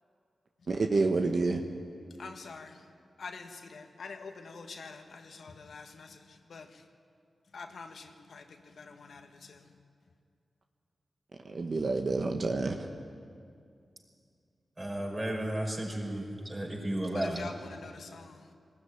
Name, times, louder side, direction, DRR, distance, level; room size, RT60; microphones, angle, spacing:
voice 1, 0.7-1.6 11.5-12.7, right 3 dB, 60° right, 1.3 m, -28 dB
voice 2, 2.2-2.7 3.2-6.1 6.5-6.6 7.5-8.4 8.8-9.2 9.5-9.6 17.4-18.4, left 4 dB, 75° left, 1.5 m, -45 dB
voice 3, 14.8-17.6, right 1 dB, 30° right, 5.4 m, -33 dB
19.5 x 15.5 x 9.8 m
cardioid pair, 50°, 0 cm